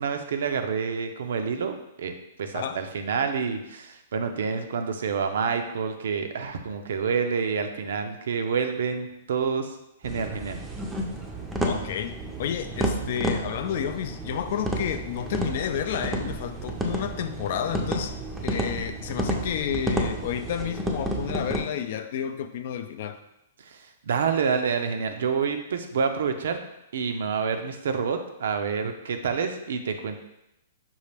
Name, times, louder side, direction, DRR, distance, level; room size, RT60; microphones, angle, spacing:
voice 1, 0.0-2.1 2.4-9.8 10.0-10.6 23.7-26.6 26.9-30.2, right 6 dB, 75° right, 7 dB, 0.5 m, -28 dB
sound 1, 10.0-21.6, right 1 dB, 10° right, 0.5 m, -31 dB
voice 2, 11.6-18.2 18.4-23.2, left 9 dB, 55° left, 9 dB, 0.3 m, -31 dB
5.4 x 2.4 x 3.3 m, 0.88 s
hypercardioid pair, 140°, 0 cm